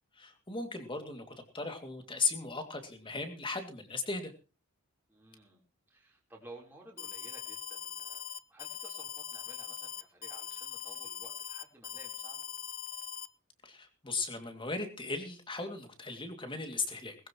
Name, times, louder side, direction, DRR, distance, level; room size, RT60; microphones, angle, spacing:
voice 1, 0.1-1.2 1.5-4.3 13.6-17.2, left 4 dB, 20° left, 6 dB, 2.3 m, -37 dB
voice 2, 5.1-5.6 5.9-8.2 8.5-12.5, right 2 dB, 10° right, -2 dB, 3.6 m, -54 dB
Alarm, 7.0-13.3, left 10 dB, 40° left, 0.8 m, -41 dB
20.5 x 14.5 x 3.0 m, 0.34 s
head